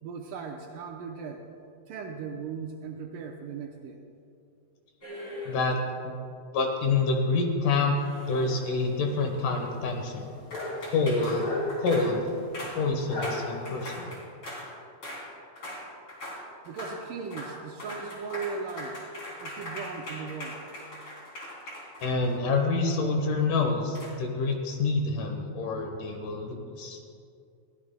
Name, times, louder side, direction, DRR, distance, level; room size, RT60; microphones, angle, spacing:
voice 1, 0.0-1.5 1.9-4.0 16.7-19.0 19.4-20.6, right 5 dB, 75° right, 2 dB, 2.2 m, -38 dB
sound 1, 5.0-5.9 7.9-8.8 10.5-14.7 15.0-15.2 15.6-16.4 16.6-17.0 17.2-17.5 17.8-22.6 23.9-24.1, left 1 dB, 35° left, 3.6 m, -40 dB
voice 2, 5.5-5.8 6.0-6.2 6.5-8.0 8.3-10.3 10.9-11.5 11.8-12.2 12.7-14.1 22.0-27.0, left 3 dB, 65° left, 3 dB, 2.4 m, -27 dB
sound 2, 8.5-13.9, left 1 dB, 50° left, 3.0 m, -38 dB
21.5 x 15.5 x 2.2 m, 2.5 s
omnidirectional pair, 4.3 m